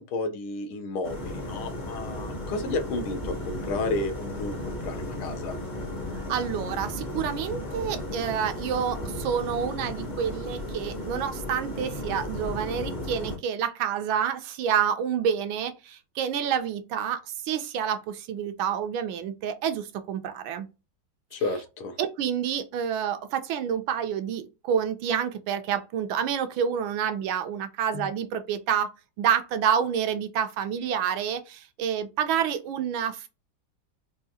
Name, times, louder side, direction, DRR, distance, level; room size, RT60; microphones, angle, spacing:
voice 1, 0.0-5.6 21.3-22.0 27.9-28.1, left 3 dB, 80° left, 1.6 m, -32 dB
sound 1, 1.0-13.4, left 1 dB, 35° left, 0.7 m, -35 dB
voice 2, 6.3-20.7 22.0-28.9 29.2-33.3, right 8 dB, 75° right, 1.3 m, -28 dB
4.8 x 2.4 x 2.7 m
omnidirectional pair, 2.3 m